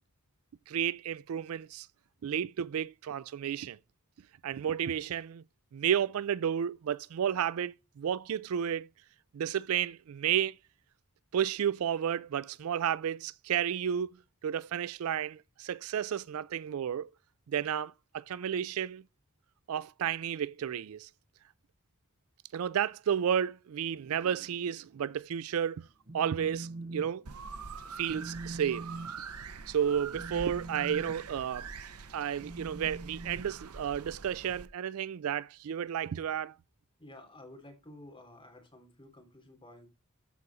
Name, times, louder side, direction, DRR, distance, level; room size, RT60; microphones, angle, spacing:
voice 1, 0.7-1.9 2.2-3.8 4.4-5.4 5.7-8.9 9.3-10.6 11.3-14.2 14.4-17.1 17.5-19.0 19.7-21.1 22.5-25.9 26.1-27.2 28.0-28.9 29.7-31.7 32.1-36.5, right 9 dB, 70° right, 0.4 m, -32 dB
Telephone, 25.9-27.1 27.4-27.7 28.0-34.2, right 2 dB, 40° right, 1.0 m, -44 dB
sound 1, 27.3-34.7, right 5 dB, 90° right, 0.9 m, -44 dB
voice 2, 37.0-39.9, left 1 dB, 25° left, 3.1 m, -52 dB
13.5 x 4.9 x 4.1 m
head